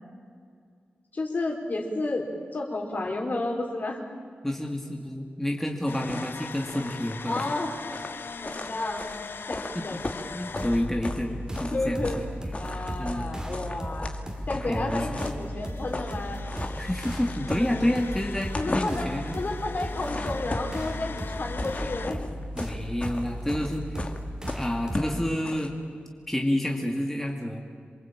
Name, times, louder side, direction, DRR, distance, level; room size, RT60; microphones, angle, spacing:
voice 1, 1.1-2.3 2.5-4.0 7.3-7.8 8.4-9.2 9.5-10.0 11.7-12.2 12.6-14.2 14.5-16.4 16.7-16.8 18.6-22.2, left 2 dB, 50° left, 2 dB, 4.4 m, -31 dB
voice 2, 4.4-7.4 9.7-10.0 10.3-12.3 13.0-13.3 14.6-15.2 16.8-19.3 22.6-24.1 24.5-25.8 26.3-27.6, left 1 dB, 10° left, 0 dB, 2.4 m, -29 dB
sound 1, 5.9-22.1, left 5 dB, 70° left, 1.0 m, -42 dB
sound 2, 6.1-11.3 11.5-12.2 12.5-15.5 15.8-16.2 16.4-18.1 18.4-19.2 19.7-20.8 21.3-25.7, left 2 dB, 35° left, 2.3 m, -36 dB
sound 3, 10.6-25.3, equal, 20° right, 3.0 m, -36 dB
27.5 x 23.0 x 9.0 m, 2.1 s
wide cardioid pair, 115°, 4 cm